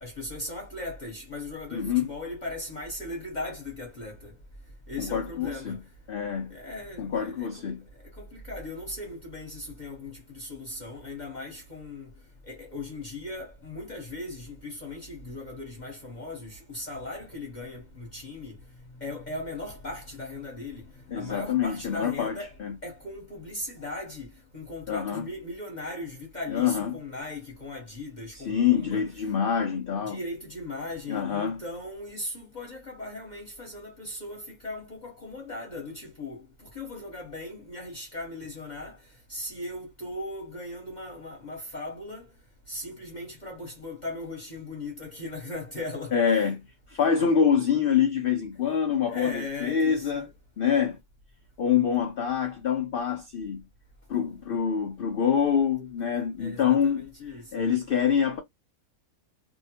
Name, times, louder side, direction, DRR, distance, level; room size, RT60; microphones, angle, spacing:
voice 1, 0.0-4.3 4.9-5.8 6.5-7.6 8.1-12.1 12.5-18.6 19.0-22.6 22.8-29.0 30.0-39.0 39.3-42.3 42.7-46.6 49.1-50.3 56.4-57.7, left 2 dB, 35° left, 0.9 m, -38 dB
voice 2, 1.7-2.1 5.0-5.8 6.1-6.6 7.0-7.8 21.1-22.8 24.9-25.3 26.5-27.0 28.5-30.2 31.1-31.6 46.1-46.6 46.9-50.2 50.6-51.0 51.6-53.7 54.1-57.1 57.5-58.4, left 7 dB, 85° left, 0.4 m, -26 dB
2.7 x 2.1 x 2.8 m
omnidirectional pair, 1.5 m